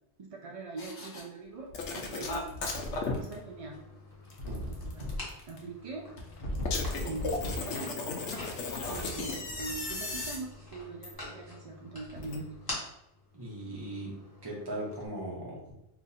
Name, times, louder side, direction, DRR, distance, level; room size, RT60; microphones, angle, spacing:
voice 1, 0.2-1.7 1.9-2.4 3.1-3.8 4.6-5.1 5.5-6.1 6.9-7.9 8.9-12.5, right 3 dB, 65° right, -1 dB, 0.3 m, -42 dB
sound 1, 0.8-1.2 1.7-3.3 4.1-5.6 6.2-7.8 8.9-10.4 11.0-11.1, left 1 dB, 55° left, 0.9 m, -38 dB
sound 2, 1.7-3.1 6.7-9.6 12.2-12.4, left 4 dB, 85° left, 0.9 m, -35 dB
sound 3, 2.6-15.1, left 1 dB, 20° left, 1.1 m, -47 dB
voice 2, 13.3-14.1 14.4-15.6, right 1 dB, 25° right, -4 dB, 0.9 m, -38 dB
2.9 x 2.5 x 4.0 m, 0.86 s
omnidirectional pair, 1.2 m